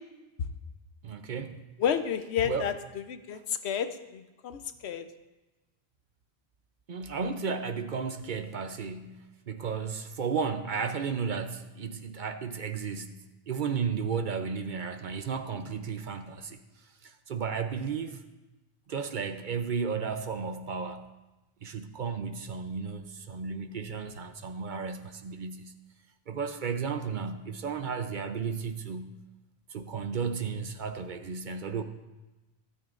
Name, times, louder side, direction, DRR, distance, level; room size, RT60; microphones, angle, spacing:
voice 1, 1.0-1.6 2.4-2.7 6.9-9.2 9.5-13.2 13.5-16.6 17.0-18.2 18.9-21.0 21.6-25.7 26.3-29.1 29.7-31.8, right 5 dB, 55° right, 8 dB, 0.7 m, -33 dB
voice 2, 1.8-2.7 3.1-5.1, left 8 dB, 80° left, 10 dB, 1.0 m, -30 dB
14.0 x 12.5 x 2.5 m, 1.1 s
omnidirectional pair, 1.1 m